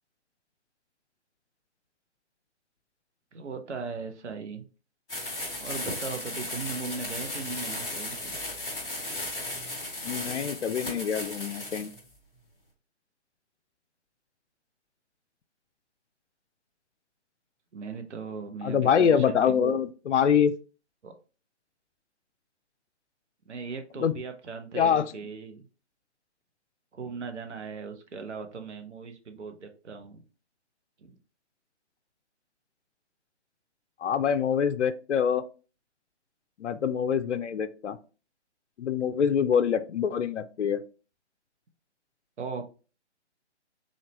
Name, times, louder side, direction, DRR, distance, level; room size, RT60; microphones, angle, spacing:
voice 1, 3.3-4.6 5.6-8.4 17.7-19.7 21.0-21.1 23.5-25.7 26.9-30.2 31.0-31.1 42.4-42.6, right 5 dB, 80° right, 6 dB, 0.8 m, -38 dB
sound 1, 5.1-12.0, left 1 dB, 5° left, 0.5 m, -35 dB
voice 2, 10.0-11.9 18.6-20.5 24.0-24.1 24.7-25.1 34.0-35.4 36.6-38.0 38.8-40.8, left 7 dB, 85° left, 10 dB, 0.5 m, -25 dB
3.9 x 3.2 x 2.9 m, 0.35 s
figure-of-eight pair, 150°, 35 cm